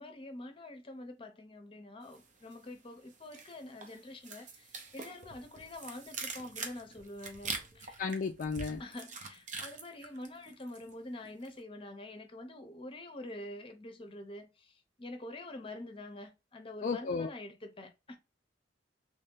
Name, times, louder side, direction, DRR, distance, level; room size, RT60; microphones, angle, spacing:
voice 1, 0.0-8.0 8.8-18.2, left 1 dB, 30° left, 0.7 m, -46 dB
sound 1, 2.1-2.8 3.1-10.9 11.2-11.6, right 4 dB, 40° right, 0.7 m, -44 dB
voice 2, 8.0-8.8 16.8-17.3, left 4 dB, 45° left, 0.3 m, -33 dB
3.2 x 2.7 x 3.6 m
head